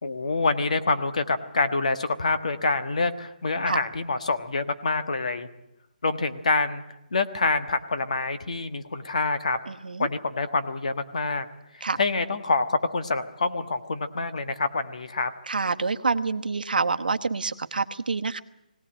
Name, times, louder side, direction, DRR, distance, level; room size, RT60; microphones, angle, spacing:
voice 1, 0.0-5.5 6.0-6.8 7.1-9.6 10.0-11.5 12.0-15.3, left 3 dB, 50° left, 9 dB, 1.5 m, -26 dB
voice 2, 9.7-10.1 11.8-12.0 15.5-18.4, right 4 dB, 75° right, 10 dB, 1.2 m, -27 dB
21.5 x 17.5 x 8.9 m, 0.88 s
hypercardioid pair, 180°, 5 cm